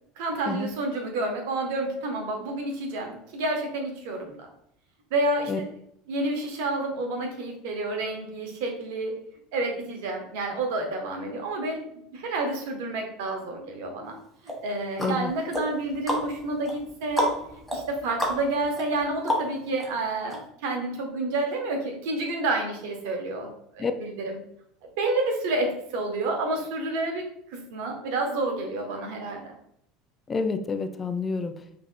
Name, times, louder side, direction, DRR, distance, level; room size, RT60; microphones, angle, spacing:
voice 1, 0.2-4.5 5.1-5.6 6.1-9.1 9.5-11.8 12.1-14.1 14.4-17.3 17.7-24.4 25.0-27.2 27.5-29.5, right 2 dB, 60° right, 2 dB, 1.0 m, -29 dB
sound 1, 14.5-19.9 20.3-20.4, equal, 5° left, 1.5 m, -31 dB
voice 2, 15.0-15.3 23.8-23.9 30.3-31.5, left 4 dB, 25° left, 8 dB, 0.3 m, -28 dB
5.7 x 2.8 x 2.2 m, 0.70 s
figure-of-eight pair, 70°, 0 cm